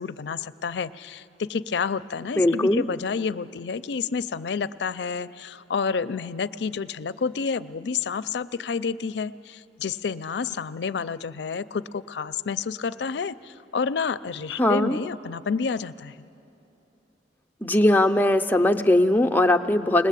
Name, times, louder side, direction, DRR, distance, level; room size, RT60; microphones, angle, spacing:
voice 1, 0.0-16.1, left 5 dB, 75° left, 16 dB, 0.4 m, -29 dB
voice 2, 2.4-2.9 14.6-15.0 17.6-20.1, left 1 dB, 10° left, 5 dB, 0.5 m, -20 dB
20.5 x 20.0 x 8.3 m, 3.0 s
head